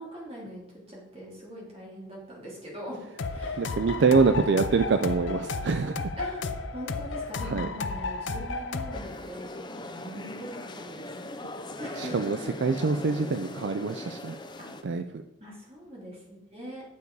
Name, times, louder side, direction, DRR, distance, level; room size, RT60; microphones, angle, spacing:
voice 1, 0.0-3.0 3.3-3.7 4.1-4.4 6.2-11.2 11.8-12.3 14.6-14.7 15.4-16.8, equal, 30° right, -4 dB, 3.3 m, -42 dB
sound 1, 3.2-9.0, left 3 dB, 75° left, 0.6 m, -33 dB
voice 2, 3.6-6.0 7.4-7.7 12.0-14.4 14.8-15.2, right 4 dB, 65° right, 9 dB, 0.4 m, -25 dB
sound 2, 8.9-14.8, left 1 dB, 25° left, 0.6 m, -40 dB
9.4 x 6.7 x 4.7 m, 0.96 s
head